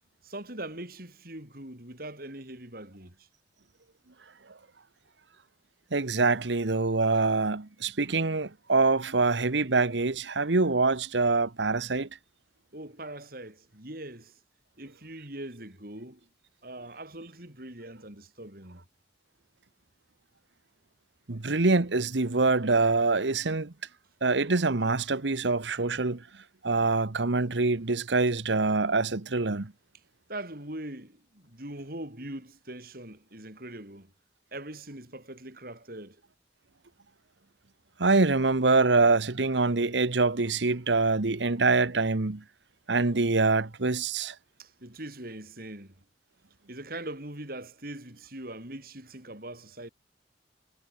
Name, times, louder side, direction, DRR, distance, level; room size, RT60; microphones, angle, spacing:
voice 1, 0.2-3.3 12.7-14.4 14.8-16.3 16.6-18.8 30.3-34.1 34.5-36.2 44.6-45.9 46.7-49.9, right 1 dB, 55° right, 5.6 m, -41 dB
voice 2, 5.9-12.1 21.3-23.7 24.2-26.2 26.6-29.7 38.0-42.4 42.9-44.3, right 3 dB, 80° right, 1.2 m, -25 dB
head